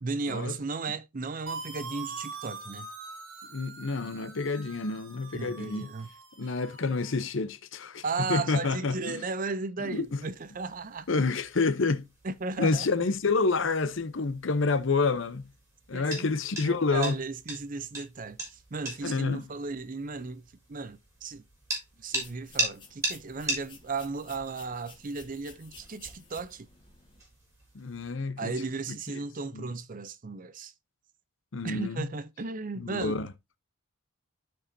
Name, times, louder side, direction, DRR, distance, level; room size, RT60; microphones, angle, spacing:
voice 1, 0.0-2.9 5.3-6.1 8.0-11.1 12.2-12.9 15.9-16.3 16.6-21.4 22.0-26.7 28.4-30.7 31.6-33.2, right 4 dB, 40° right, 0.6 m, -35 dB
sound 1, 1.5-7.2, right 4 dB, 70° right, 1.8 m, -43 dB
voice 2, 3.5-5.9 6.4-8.0 8.3-9.2 9.8-10.2 11.1-12.0 12.6-15.5 15.9-17.1 19.0-19.4 27.7-28.5 29.5-29.7 31.5-32.1 32.8-33.3, left 4 dB, 60° left, 0.7 m, -28 dB
sound 2, 9.8-28.1, right 1 dB, 15° right, 4.0 m, -40 dB
sound 3, 22.1-27.2, left 4 dB, 20° left, 2.0 m, -53 dB
13.0 x 4.9 x 2.7 m
head